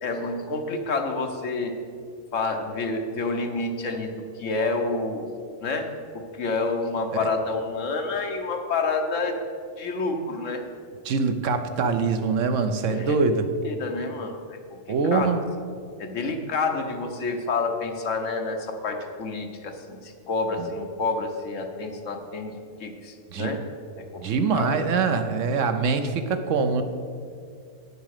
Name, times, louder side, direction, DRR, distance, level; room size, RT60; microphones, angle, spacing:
voice 1, 0.0-1.7 2.3-5.3 5.6-5.9 6.1-9.4 9.8-10.6 12.9-13.2 13.6-14.4 15.1-15.3 16.0-23.6 24.0-24.2 24.5-24.8, left 3 dB, 70° left, 4 dB, 1.4 m, -28 dB
voice 2, 11.0-13.5 14.9-15.4 20.6-20.7 23.3-23.5 24.2-26.8, right 4 dB, 70° right, 8 dB, 1.1 m, -24 dB
9.2 x 6.9 x 6.5 m, 2.3 s
omnidirectional pair, 1.3 m